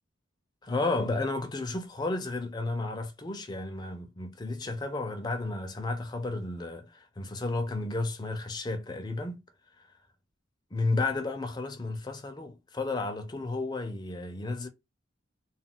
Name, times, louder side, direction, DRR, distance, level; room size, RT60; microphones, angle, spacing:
voice 1, 0.6-9.4 10.7-14.7, left 2 dB, 20° left, 0.4 m, -32 dB
2.3 x 2.2 x 3.6 m
head